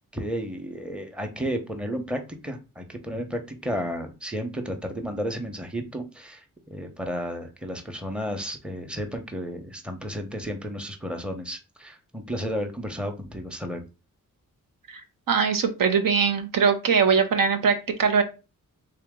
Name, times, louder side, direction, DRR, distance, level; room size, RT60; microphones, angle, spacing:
voice 1, 0.1-6.4 6.7-13.8, equal, 5° right, 5 dB, 0.8 m, -32 dB
voice 2, 15.3-18.2, right 6 dB, 70° right, 6 dB, 0.8 m, -21 dB
3.6 x 2.8 x 3.6 m, 0.30 s
cardioid pair, 65°, 35 cm